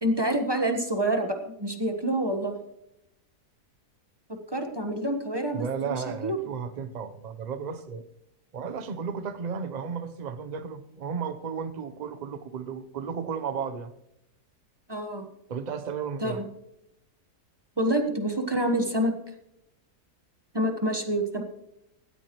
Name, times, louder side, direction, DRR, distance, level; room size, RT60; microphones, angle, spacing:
voice 1, 0.0-2.6 4.3-6.4 14.9-15.3 16.2-16.5 17.8-19.1 20.5-21.4, right 1 dB, 15° right, 4 dB, 1.0 m, -27 dB
voice 2, 5.5-8.0 8.5-13.9 15.5-16.4, right 6 dB, 40° right, 11 dB, 0.6 m, -34 dB
18.0 x 14.0 x 3.0 m, 0.84 s
omnidirectional pair, 1.7 m